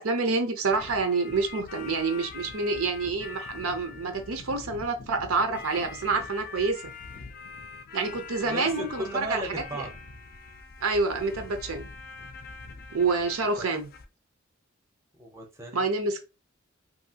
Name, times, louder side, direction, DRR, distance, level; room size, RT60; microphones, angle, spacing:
voice 1, 0.0-6.8 7.9-9.0 9.3-9.4 10.8-11.9 12.9-13.9 15.7-16.2, right 3 dB, 90° right, 0.6 m, -27 dB
sound 1, 0.7-14.1, left 4 dB, 45° left, 0.4 m, -44 dB
voice 2, 8.4-9.9 13.0-13.7 15.2-15.8, right 1 dB, 15° right, 0.6 m, -37 dB
2.7 x 2.7 x 2.7 m
head